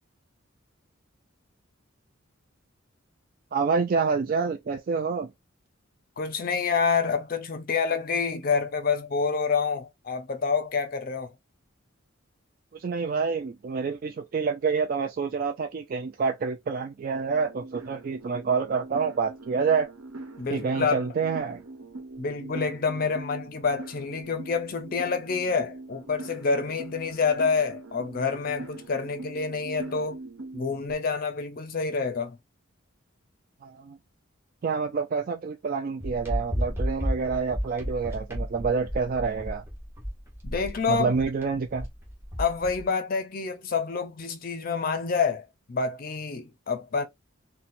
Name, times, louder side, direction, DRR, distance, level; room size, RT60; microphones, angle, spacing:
voice 1, 3.5-5.3 12.7-19.9 20.5-21.6 33.6-34.0 34.6-39.6 40.9-41.9, right 5 dB, 45° right, 0.3 m, -27 dB
voice 2, 6.2-11.3 20.4-21.1 22.2-30.2 30.5-32.4 40.4-41.2 42.4-47.0, left 5 dB, 45° left, 0.5 m, -28 dB
sound 1, 17.1-30.9, right 2 dB, 90° right, 1.0 m, -42 dB
sound 2, 36.0-42.8, equal, 10° right, 1.0 m, -32 dB
4.2 x 2.1 x 2.5 m
head